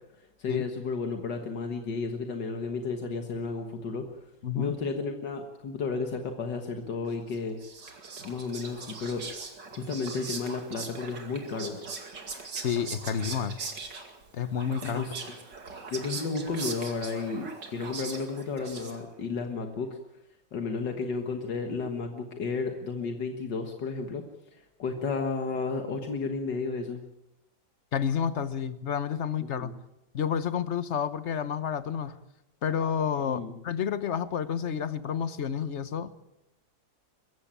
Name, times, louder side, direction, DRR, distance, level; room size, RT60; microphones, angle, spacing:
voice 1, 0.4-4.1 4.5-7.6 8.2-11.7 14.8-15.3 15.9-20.0 20.5-24.2 24.8-27.0 29.6-29.7 33.2-33.6, left 4 dB, 80° left, 5 dB, 2.1 m, -33 dB
voice 2, 4.4-4.8 12.6-13.6 14.3-15.1 27.9-29.7 30.1-32.2 32.6-36.2, left 8 dB, 45° left, 14 dB, 1.1 m, -30 dB
Whispering, 7.3-19.3, right 4 dB, 80° right, 2.9 m, -40 dB
22.5 x 15.5 x 8.9 m, 0.92 s
omnidirectional pair, 1.9 m